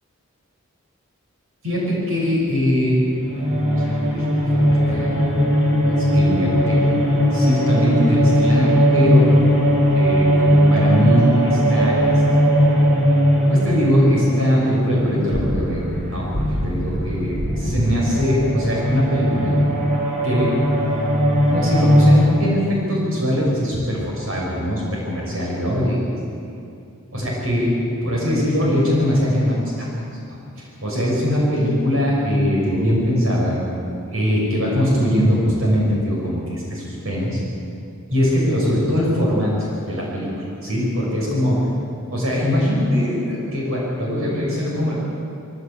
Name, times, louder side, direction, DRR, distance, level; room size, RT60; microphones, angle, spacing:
voice 1, 1.6-3.0 3.7-5.2 6.0-6.8 7.3-9.3 9.9-12.5 13.5-15.8 16.1-19.5 20.2-20.5 21.5-26.0 27.1-27.7 28.0-29.6 30.0-30.1 30.6-33.6 34.1-37.4 38.1-41.6 42.1-44.9, equal, 75° right, -4 dB, 6.5 m, -21 dB
sound 1, 2.8-22.2, equal, 30° right, 3.8 m, -18 dB
22.0 x 16.0 x 8.7 m, 2.5 s
head